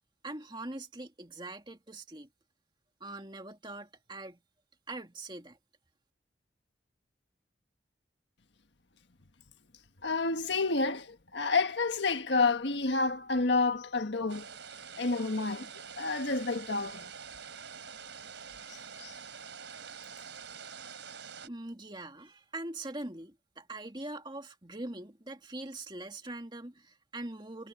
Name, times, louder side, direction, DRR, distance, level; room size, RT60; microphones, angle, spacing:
voice 1, 0.2-2.3 3.0-4.4 4.9-5.6 21.4-27.7, right 2 dB, 25° right, 2.4 m, -42 dB
voice 2, 10.0-14.5 15.0-15.7 16.0-17.1 18.7-19.1, left 3 dB, 70° left, 1.5 m, -29 dB
sound 1, 14.3-21.5, right 6 dB, 80° right, 3.4 m, -46 dB
head